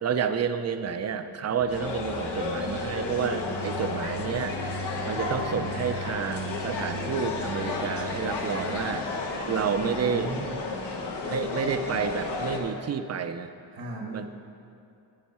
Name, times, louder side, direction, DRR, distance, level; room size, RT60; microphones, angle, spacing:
voice 1, 0.0-4.6 5.1-9.1 9.5-10.3 11.3-13.5 14.1-14.3, right 6 dB, 40° right, 9 dB, 0.5 m, -30 dB
sound 1, 1.6-9.4, left 2 dB, 35° left, 0.7 m, -41 dB
sound 2, 1.7-12.6, left 3 dB, 85° left, 1.3 m, -32 dB
voice 2, 10.0-10.6 13.7-14.3, right 2 dB, 80° right, -1 dB, 1.6 m, -36 dB
10.5 x 9.3 x 4.3 m, 2.5 s
wide cardioid pair, 120°, 40 cm